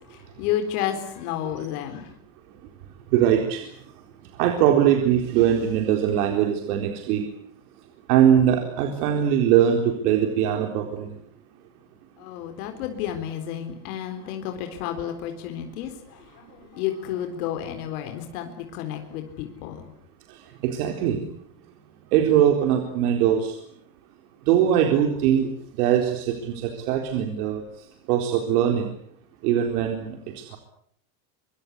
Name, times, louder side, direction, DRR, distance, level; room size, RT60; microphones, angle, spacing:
voice 1, 0.0-2.1 12.2-19.9, left 10 dB, 75° left, 5 dB, 4.1 m, -31 dB
voice 2, 3.1-3.7 4.3-7.3 8.1-11.1 20.3-21.3 22.1-23.6 24.5-25.5 25.8-27.6 28.1-28.9 29.4-30.6, right 9 dB, 75° right, 3 dB, 4.3 m, -21 dB
25.0 x 24.5 x 8.4 m, 0.67 s
supercardioid pair, 155°, 45 cm